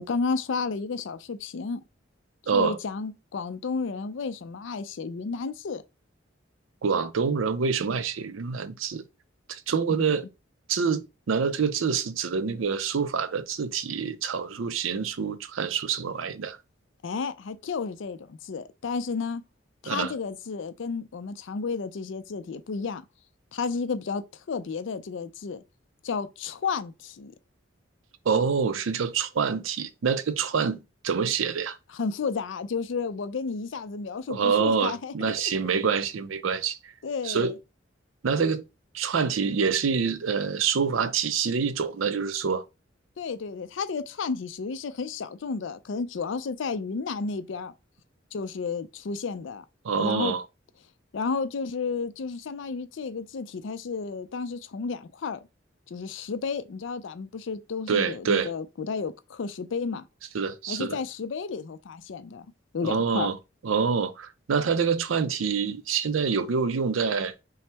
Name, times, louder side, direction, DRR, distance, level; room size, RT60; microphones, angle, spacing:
voice 1, 0.0-1.8 2.5-5.8 9.9-10.1 17.0-19.4 19.8-23.0 23.5-25.6 26.0-27.3 31.9-35.3 35.6-35.7 37.0-37.5 43.2-47.7 48.3-49.6 50.0-50.3 51.1-55.4 55.9-60.1 60.7-62.5 62.7-63.3, left 5 dB, 70° left, 0.4 m, -32 dB
voice 2, 2.5-2.8 6.8-9.0 9.5-10.3 10.7-16.6 19.9-20.1 28.3-31.8 34.3-36.8 37.2-37.5 38.2-38.6 38.9-42.6 49.8-50.4 57.9-58.5 60.3-61.0 62.8-63.4 63.6-67.3, right 6 dB, 85° right, 0.5 m, -26 dB
5.5 x 2.0 x 3.3 m
head